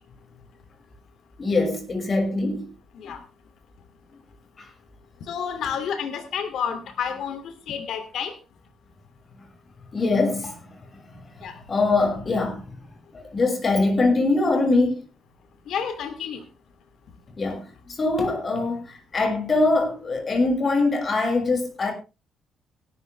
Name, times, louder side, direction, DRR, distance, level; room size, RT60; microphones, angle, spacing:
voice 1, 1.4-2.6 3.0-3.1 4.6-4.7 5.6-5.7 9.9-12.8 13.1-15.0 17.4-21.9, left 3 dB, 35° left, 6.2 m, -23 dB
voice 2, 5.3-8.4 11.4-11.6 15.7-16.4, left 7 dB, 70° left, 2.8 m, -30 dB
17.5 x 12.5 x 3.4 m
cardioid pair, 90°, 0 cm